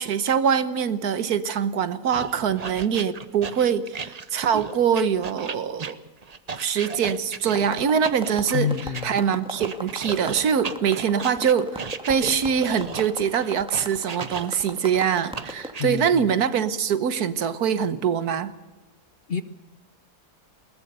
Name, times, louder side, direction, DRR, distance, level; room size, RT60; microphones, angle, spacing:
voice 1, 0.0-6.0 6.6-8.7 9.0-18.5, right 7 dB, 70° right, 13 dB, 1.5 m, -23 dB
sound 1, 2.1-9.0 9.6-14.8 15.3-15.8, right 5 dB, 35° right, 0.6 m, -35 dB
sound 2, 7.5-15.7, equal, 5° right, 1.7 m, -37 dB
voice 2, 8.5-9.2 15.8-16.3 19.3-19.4, left 7 dB, 50° left, 11 dB, 0.8 m, -27 dB
21.0 x 19.0 x 6.7 m, 1.1 s
omnidirectional pair, 1.7 m